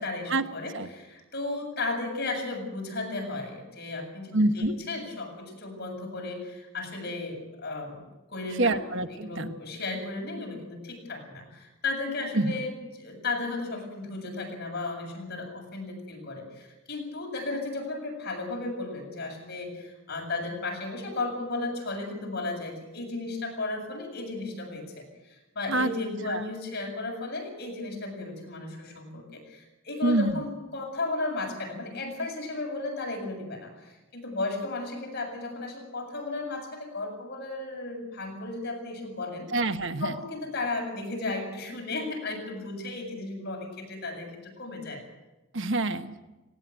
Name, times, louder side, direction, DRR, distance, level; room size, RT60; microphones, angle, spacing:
voice 1, 0.0-8.0 8.3-8.8 9.1-39.5 40.0-45.0, left 2 dB, 50° left, 2 dB, 7.5 m, -34 dB
voice 2, 4.3-4.8 8.6-9.5 12.3-12.5 25.7-25.9 26.3-26.4 30.0-30.4 39.5-40.1 45.5-46.2, right 2 dB, 60° right, 9 dB, 1.2 m, -26 dB
18.5 x 18.5 x 9.2 m, 1.1 s
head